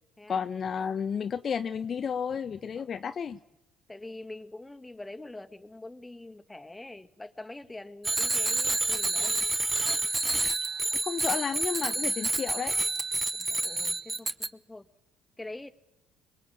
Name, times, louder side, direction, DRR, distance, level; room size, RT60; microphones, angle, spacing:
voice 1, 0.3-3.4 11.0-12.7, left 7 dB, 45° left, 0.8 m, -32 dB
voice 2, 3.9-9.4 13.3-14.9 15.4-15.7, left 2 dB, 10° left, 1.8 m, -44 dB
Bicycle bell, 8.0-14.5, right 2 dB, 20° right, 1.2 m, -29 dB
25.0 x 21.5 x 8.8 m
hypercardioid pair, 55°, 0 cm